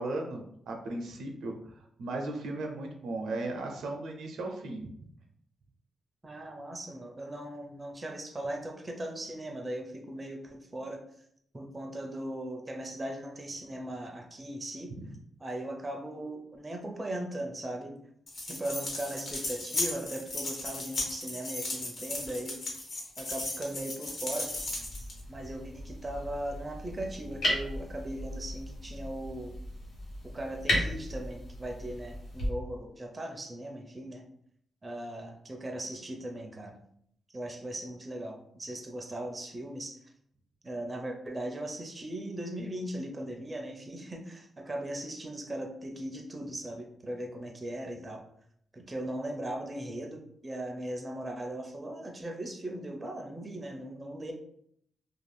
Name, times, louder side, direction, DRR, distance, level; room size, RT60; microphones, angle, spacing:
voice 1, 0.0-4.9, right 2 dB, 90° right, 2 dB, 0.5 m, -36 dB
voice 2, 6.2-11.0 11.5-14.9 15.4-18.0 18.4-22.6 23.2-24.5 25.3-29.5 30.2-34.3 34.8-36.8 37.3-40.0 40.6-48.2 48.7-54.3, right 1 dB, 20° right, 2 dB, 0.4 m, -38 dB
sound 1, 18.3-25.2, left 2 dB, 50° left, 0.8 m, -36 dB
sound 2, 24.4-32.5, equal, 70° left, 1.1 m, -36 dB
2.5 x 2.3 x 3.2 m, 0.69 s
wide cardioid pair, 135°, 0 cm